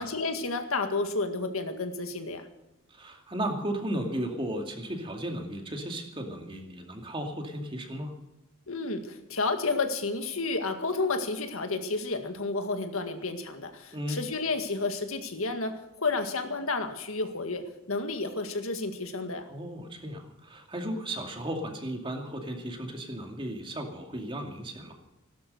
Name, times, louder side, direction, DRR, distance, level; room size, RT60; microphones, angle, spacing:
voice 1, 0.0-2.5 8.7-19.5, left 3 dB, 75° left, 6 dB, 1.9 m, -31 dB
voice 2, 2.9-8.2 13.9-14.2 19.5-24.9, right 1 dB, 25° right, 3 dB, 2.4 m, -35 dB
17.0 x 12.5 x 6.5 m, 0.92 s
head